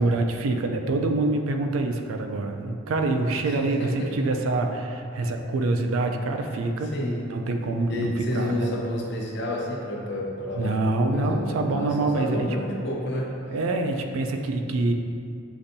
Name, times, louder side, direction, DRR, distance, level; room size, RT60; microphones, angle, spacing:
voice 1, 0.0-6.9 7.2-8.7 10.6-12.6 13.5-14.9, right 2 dB, 75° right, 4 dB, 0.4 m, -25 dB
voice 2, 3.4-4.3 6.9-7.3 7.9-13.3, left 1 dB, 55° left, -2 dB, 0.7 m, -30 dB
6.9 x 2.6 x 2.6 m, 2.5 s
head